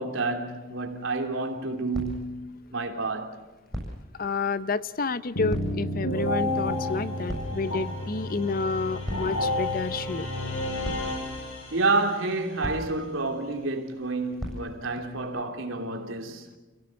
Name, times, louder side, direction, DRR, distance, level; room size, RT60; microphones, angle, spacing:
voice 1, 0.0-3.4 11.7-16.5, right 3 dB, 85° right, 3.2 m, -29 dB
sound 1, 0.7-15.2, equal, 5° left, 7.6 m, -42 dB
voice 2, 4.1-10.3, left 4 dB, 45° left, 0.7 m, -30 dB
sound 2, 5.3-12.1, left 1 dB, 90° left, 5.5 m, -30 dB
30.0 x 17.0 x 7.8 m
head